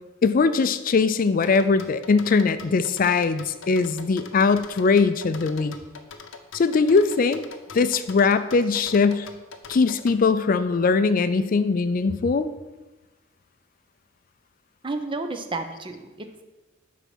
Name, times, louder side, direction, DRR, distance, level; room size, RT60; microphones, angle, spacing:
voice 1, 0.2-5.8 6.5-7.4 7.7-9.3 9.7-12.5, left 4 dB, 45° left, 13 dB, 0.4 m, -21 dB
sound 1, 1.4-10.2, left 5 dB, 75° left, 0.7 m, -42 dB
voice 2, 14.8-16.4, right 3 dB, 25° right, 7 dB, 0.7 m, -31 dB
9.1 x 4.2 x 6.1 m, 1.1 s
head